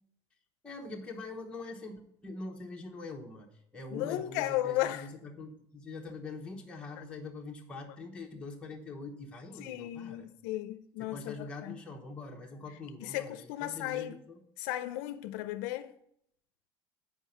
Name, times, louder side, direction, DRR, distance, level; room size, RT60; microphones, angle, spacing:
voice 1, 0.6-3.5 3.7-10.3 11.0-14.4, left 3 dB, 10° left, 1.0 m, -44 dB
voice 2, 3.9-5.1 7.0-7.1 9.6-11.8 13.0-14.2 14.6-15.9, left 14 dB, 75° left, 0.5 m, -35 dB
8.1 x 5.1 x 5.7 m
cardioid pair, 170°, 10 cm